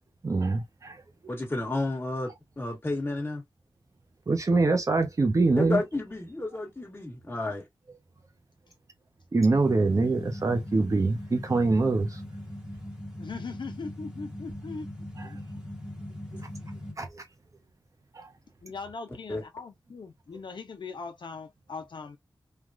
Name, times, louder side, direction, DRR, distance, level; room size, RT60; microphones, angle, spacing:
voice 1, 0.2-1.0 4.3-5.8 9.3-12.2 15.2-15.3 17.0-17.2 18.1-18.3, right 3 dB, 40° right, 0.6 m, -24 dB
voice 2, 1.3-3.4 5.6-7.6 19.3-19.4, left 2 dB, 25° left, 1.4 m, -31 dB
sound 1, 9.5-16.9, left 1 dB, 5° right, 1.1 m, -40 dB
voice 3, 13.2-14.9 15.1-15.4 18.6-22.2, left 4 dB, 65° left, 0.6 m, -40 dB
3.2 x 2.3 x 2.4 m
wide cardioid pair, 120°, 9 cm